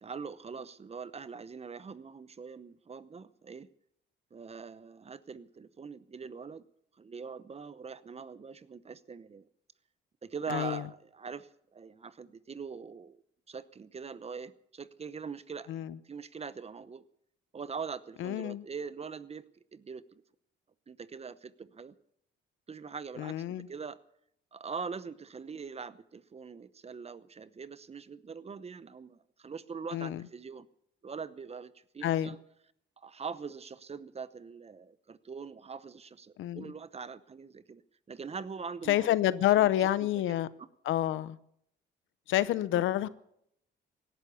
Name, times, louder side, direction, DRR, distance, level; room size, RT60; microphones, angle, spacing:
voice 1, 0.0-3.7 4.3-6.6 7.0-9.5 10.2-13.2 13.5-17.0 17.5-20.2 20.9-21.9 22.7-24.0 24.5-30.7 31.0-32.4 33.0-37.8 38.1-40.7 42.5-42.8, right 5 dB, 30° right, 16 dB, 0.8 m, -43 dB
voice 2, 10.5-10.8 15.7-16.0 18.2-18.6 23.2-23.7 29.9-30.2 32.0-32.4 36.4-36.7 38.9-40.5 40.9-41.4 42.3-43.1, left 13 dB, 80° left, 17 dB, 0.8 m, -28 dB
17.5 x 11.5 x 7.0 m, 0.74 s
cardioid pair, 90°, 20 cm